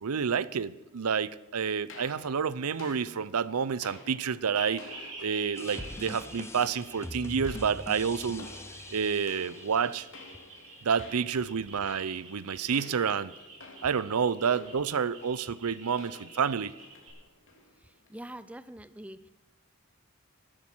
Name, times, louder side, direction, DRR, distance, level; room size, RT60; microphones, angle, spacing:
voice 1, 0.0-4.9 5.2-8.5 8.9-10.1 10.8-13.3 13.8-16.7, right 6 dB, 90° right, 0.6 m, -29 dB
sound 1, 1.9-18.2, left 3 dB, 60° left, 3.2 m, -52 dB
sound 2, 4.5-17.1, right 3 dB, 75° right, 6.2 m, -48 dB
sound 3, 5.6-10.5, left 1 dB, 10° left, 0.8 m, -43 dB
voice 2, 17.8-19.3, right 1 dB, 5° right, 0.5 m, -45 dB
14.0 x 13.0 x 6.1 m
head